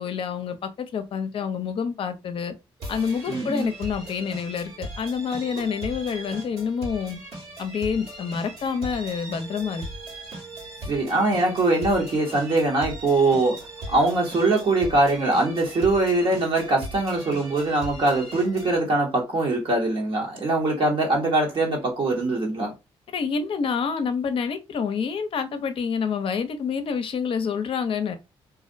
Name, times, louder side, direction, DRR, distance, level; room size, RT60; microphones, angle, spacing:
voice 1, 0.0-2.5 2.9-7.2 7.6-9.8 23.1-28.2, left 6 dB, 55° left, 0.5 m, -27 dB
sound 1, 2.8-18.8, right 1 dB, 70° right, 1.3 m, -39 dB
voice 2, 3.3-3.7 10.8-13.6 13.9-22.7, right 2 dB, 55° right, 0.9 m, -22 dB
2.4 x 2.0 x 2.5 m
cardioid pair, 75°, 11 cm